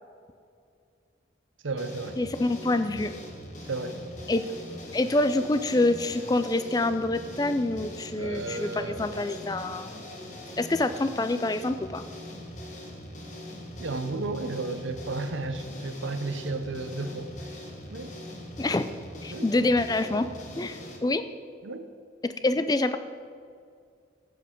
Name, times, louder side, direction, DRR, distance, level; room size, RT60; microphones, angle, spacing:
voice 1, 1.6-2.2 3.6-4.0 8.2-9.5 13.8-17.6 17.9-18.1 19.3-19.5 21.6-21.9, right 3 dB, 80° right, 9 dB, 0.7 m, -33 dB
sound 1, 1.8-21.0, left 1 dB, 40° left, 1.2 m, -42 dB
voice 2, 2.2-3.1 4.3-4.4 4.9-10.0 10.6-12.0 18.6-18.9 19.2-20.3 20.6-21.2 22.2-23.0, left 2 dB, 20° left, 10 dB, 0.4 m, -26 dB
13.0 x 7.7 x 3.8 m, 2.2 s
head